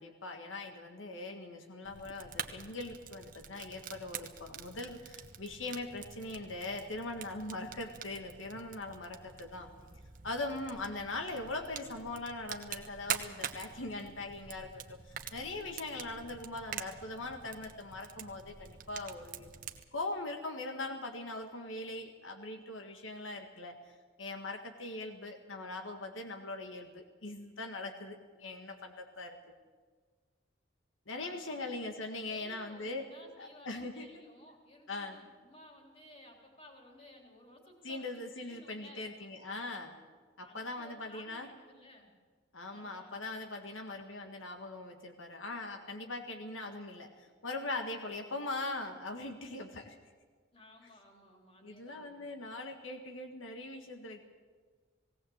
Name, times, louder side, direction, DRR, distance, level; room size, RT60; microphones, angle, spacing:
voice 1, 0.0-9.7 10.2-19.5 19.9-23.9 24.2-29.4 31.1-33.0 33.4-34.1 34.9-35.2 37.8-40.0 40.4-41.5 42.5-50.0 51.6-54.2, left 2 dB, 85° left, 5 dB, 1.7 m, -41 dB
Fire, 1.9-19.8, right 8 dB, 45° right, 1.1 m, -46 dB
voice 2, 31.1-31.8 32.3-39.1 40.4-42.1 42.7-43.2 47.7-48.1 50.5-52.2, left 1 dB, 30° left, 1 dB, 3.6 m, -57 dB
18.5 x 18.0 x 8.1 m, 1.5 s
head